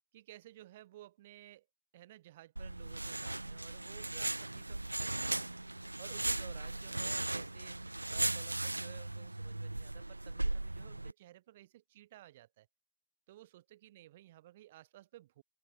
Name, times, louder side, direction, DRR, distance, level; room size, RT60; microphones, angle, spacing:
voice 1, 0.1-1.7 1.9-5.4 6.0-12.7 13.3-15.4, right 15 dB, 50° right, 7.0 m, -56 dB
sound 1, 2.6-11.1, right 2 dB, 90° right, 0.3 m, -37 dB
open air
figure-of-eight pair, 110°, 0 cm